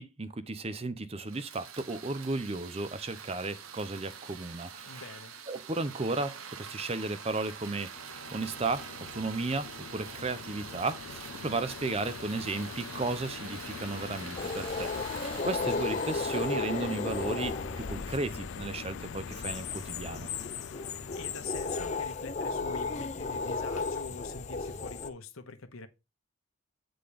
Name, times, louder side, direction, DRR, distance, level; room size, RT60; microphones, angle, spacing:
voice 1, 0.0-5.0 5.5-7.9 8.3-8.9 9.1-20.3, right 3 dB, 30° right, 0.6 m, -34 dB
sound 1, 1.3-17.4, right 6 dB, 85° right, 0.9 m, -45 dB
voice 2, 4.9-5.3 15.6-15.9 21.1-25.9, left 3 dB, 80° left, 1.1 m, -45 dB
sound 2, 7.6-22.0, left 8 dB, 65° left, 0.3 m, -44 dB
sound 3, 14.4-25.1, left 3 dB, 35° left, 0.7 m, -34 dB
8.5 x 3.9 x 5.0 m
head